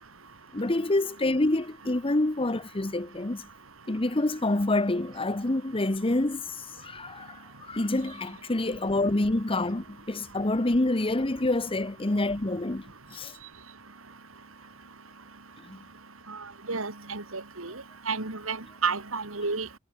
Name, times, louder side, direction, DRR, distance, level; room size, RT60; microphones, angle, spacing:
voice 1, 0.5-3.5 3.9-6.5 6.8-13.3 15.6-15.8, left 2 dB, 25° left, 1.1 m, -27 dB
voice 2, 16.7-17.7 18.1-18.6 18.8-19.7, right 4 dB, 85° right, 2.9 m, -31 dB
head